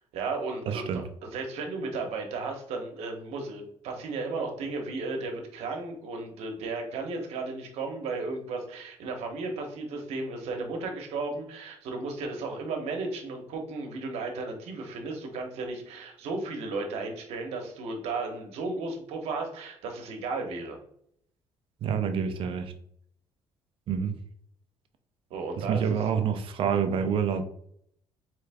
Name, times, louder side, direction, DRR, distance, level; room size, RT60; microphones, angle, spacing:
voice 1, 0.1-20.8 25.3-26.0, right 3 dB, 80° right, 2 dB, 1.1 m, -34 dB
voice 2, 0.7-1.0 21.8-22.7 23.9-24.2 25.6-27.4, right 7 dB, 55° right, 8 dB, 0.6 m, -27 dB
3.8 x 3.4 x 3.5 m, 0.69 s
cardioid pair, 135°, 11 cm